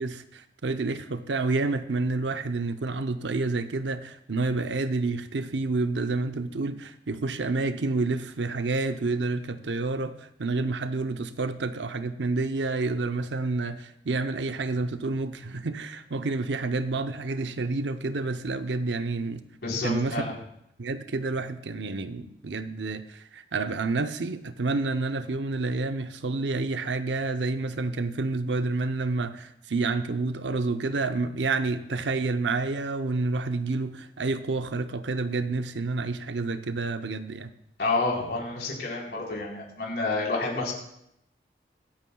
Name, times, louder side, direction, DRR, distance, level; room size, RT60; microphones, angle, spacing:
voice 1, 0.0-19.4 19.8-20.2 20.8-37.5, right 3 dB, 90° right, 9 dB, 0.7 m, -29 dB
voice 2, 19.6-20.3 37.8-40.7, left 3 dB, 70° left, -3 dB, 3.9 m, -29 dB
24.5 x 8.9 x 2.3 m, 0.77 s
head